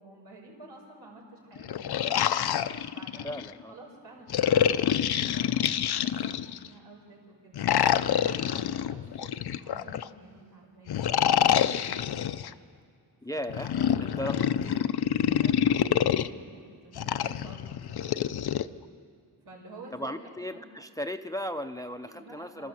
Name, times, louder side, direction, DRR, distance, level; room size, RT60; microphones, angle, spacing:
voice 1, 0.0-2.3 2.9-3.3 3.7-12.4 13.3-14.5 15.3-18.6 19.4-20.7 22.0-22.7, right 2 dB, 85° right, -2 dB, 5.4 m, -50 dB
sound 1, 1.6-3.5 4.3-6.7 7.5-10.1 10.9-12.5 13.5-16.3 17.0-18.6, left 10 dB, 75° left, 0.6 m, -26 dB
voice 2, 3.2-3.7 13.2-13.7 14.2-14.8 19.9-22.7, equal, 10° left, 9 dB, 0.6 m, -36 dB
27.5 x 13.0 x 7.7 m, 2.2 s
wide cardioid pair, 130°, 39 cm